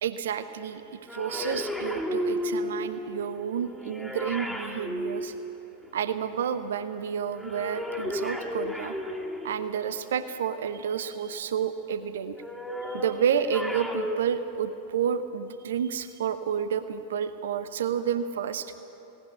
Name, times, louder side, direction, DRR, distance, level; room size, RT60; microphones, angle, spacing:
voice 1, 0.0-5.3 5.9-8.9 9.4-12.4 12.9-18.7, right 8 dB, 60° right, 11 dB, 0.9 m, -30 dB
sound 1, 1.1-6.1 7.3-9.9 12.3-14.2, left 1 dB, ahead, 2.4 m, -33 dB
18.0 x 18.0 x 9.6 m, 3.0 s
figure-of-eight pair, 90°, 0 cm